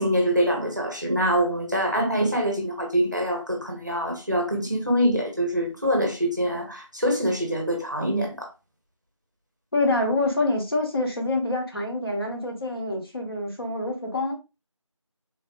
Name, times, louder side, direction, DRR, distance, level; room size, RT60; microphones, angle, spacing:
voice 1, 0.0-8.5, equal, 35° right, 0.6 m, -24 dB
voice 2, 9.7-14.4, left 2 dB, 45° left, 1.0 m, -26 dB
3.4 x 2.3 x 2.5 m
figure-of-eight pair, 180°, 17 cm